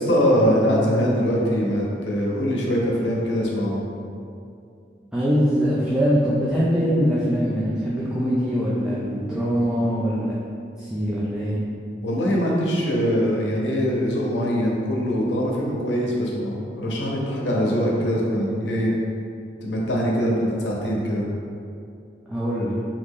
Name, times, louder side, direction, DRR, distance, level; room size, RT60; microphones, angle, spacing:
voice 1, 0.0-3.8 12.0-18.9 19.6-21.3, equal, 85° left, -3 dB, 0.6 m, -22 dB
voice 2, 5.1-10.4 10.8-11.6 22.3-22.7, equal, 5° right, -9 dB, 0.3 m, -22 dB
3.0 x 2.5 x 3.6 m, 2.4 s
head